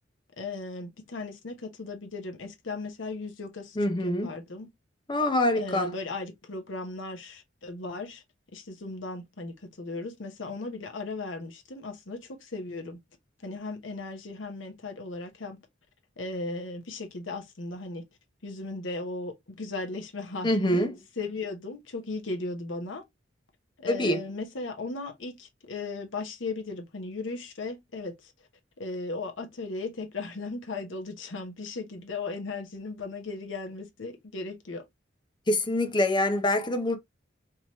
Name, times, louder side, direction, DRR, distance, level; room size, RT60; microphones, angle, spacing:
voice 1, 0.4-3.8 4.0-4.7 5.5-8.2 8.5-13.0 13.4-15.6 16.2-18.0 18.4-20.9 21.2-23.0 23.8-28.3 28.8-34.8, left 3 dB, 85° left, 0.9 m, -36 dB
voice 2, 3.8-4.3 5.1-5.9 20.4-20.9 23.9-24.2 35.5-37.0, left 1 dB, 25° left, 0.6 m, -25 dB
3.5 x 2.9 x 2.9 m
head